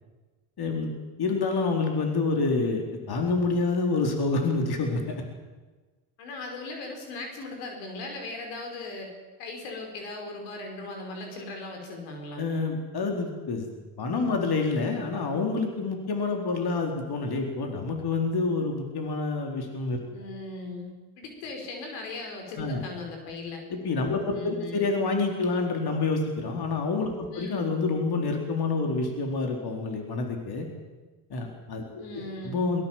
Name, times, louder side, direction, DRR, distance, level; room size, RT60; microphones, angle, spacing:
voice 1, 0.6-5.2 12.4-13.7 14.0-20.0 22.6-22.8 23.7-30.7 31.3-32.0 32.4-32.8, left 3 dB, 50° left, 2 dB, 4.6 m, -28 dB
voice 2, 6.2-9.1 9.4-12.5 20.1-23.6 24.3-24.9 27.3-27.6 32.0-32.6, left 2 dB, 85° left, 3 dB, 5.7 m, -38 dB
22.0 x 20.0 x 7.6 m, 1.3 s
supercardioid pair, 70°, 49 cm